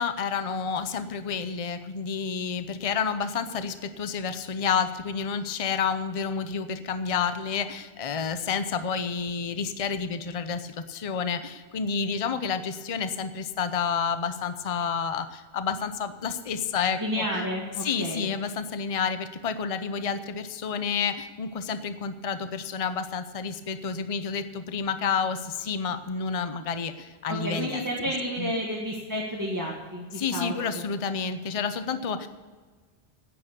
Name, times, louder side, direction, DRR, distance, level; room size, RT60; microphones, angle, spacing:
voice 1, 0.0-17.2 17.8-27.8 28.4-28.5 30.2-32.3, left 6 dB, 40° left, 11 dB, 0.7 m, -30 dB
voice 2, 17.0-18.3 27.3-30.8, equal, 20° right, -4 dB, 1.8 m, -31 dB
10.5 x 9.8 x 6.8 m, 1.4 s
omnidirectional pair, 1.0 m